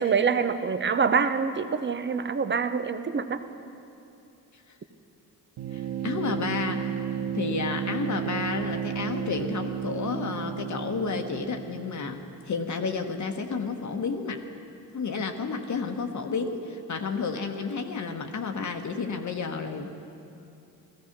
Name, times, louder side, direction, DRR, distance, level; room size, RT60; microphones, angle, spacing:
voice 1, 0.0-3.4, right 6 dB, 30° right, 10 dB, 0.9 m, -25 dB
sound 1, 5.6-12.2, right 8 dB, 70° right, 1.0 m, -32 dB
voice 2, 5.7-6.9 7.3-12.2 12.4-14.4 14.9-20.0, left 4 dB, 45° left, 5 dB, 1.2 m, -31 dB
15.0 x 14.0 x 6.0 m, 2.7 s
supercardioid pair, 70°, 40 cm